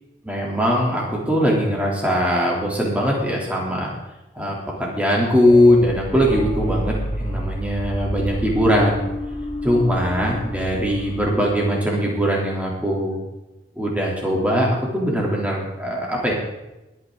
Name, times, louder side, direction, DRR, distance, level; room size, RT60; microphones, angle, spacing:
voice 1, 0.2-3.9 4.3-9.0 9.6-13.2 13.7-16.3, equal, 10° right, -3 dB, 3.4 m, -20 dB
sound 1, 5.4-11.2, equal, 35° left, 1.9 m, -29 dB
21.5 x 9.5 x 4.0 m, 0.98 s
head